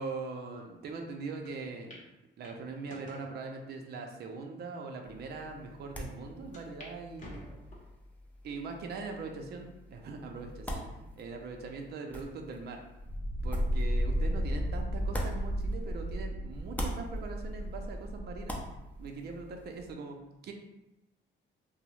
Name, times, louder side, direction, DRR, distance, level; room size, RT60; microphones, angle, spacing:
voice 1, 0.0-2.0 2.4-7.4 8.4-12.8 13.4-18.6 19.0-20.5, right 4 dB, 55° right, 3 dB, 0.4 m, -41 dB
sound 1, 1.4-1.5 1.9-2.0 2.4-3.3 4.0-4.1 4.8-4.9 5.2-5.3 6.5-6.9 7.2-8.0 8.5-8.9 9.5-9.6 10.7-11.1, left 1 dB, 35° left, 0.8 m, -50 dB
sound 2, 5.0-16.2 16.5-19.9, equal, 5° left, 0.4 m, -44 dB
sound 3, 13.0-19.0, equal, 65° left, 0.7 m, -33 dB
2.7 x 2.0 x 3.0 m, 0.94 s
cardioid pair, 90°, 20 cm